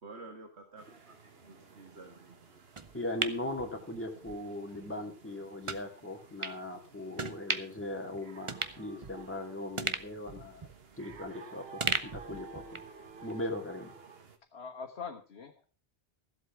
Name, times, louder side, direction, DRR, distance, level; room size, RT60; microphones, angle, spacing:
voice 1, 0.0-2.6, right 3 dB, 85° right, 4 dB, 2.2 m, -51 dB
sound 1, 0.8-14.4, right 5 dB, 65° right, 1.6 m, -53 dB
sound 2, 2.8-4.4 4.7-4.9 5.6-5.8 6.4-6.6 7.2-7.8 8.1-8.2 8.5-9.4 9.8-11.4 11.8-13.0 13.3-13.4, right 4 dB, 30° right, 0.8 m, -37 dB
voice 2, 2.9-12.8 13.2-13.9, left 1 dB, 10° left, 1 dB, 2.4 m, -39 dB
voice 3, 14.5-15.7, left 5 dB, 75° left, 2 dB, 1.5 m, -43 dB
14.5 x 8.1 x 5.8 m, 0.36 s
omnidirectional pair, 1.1 m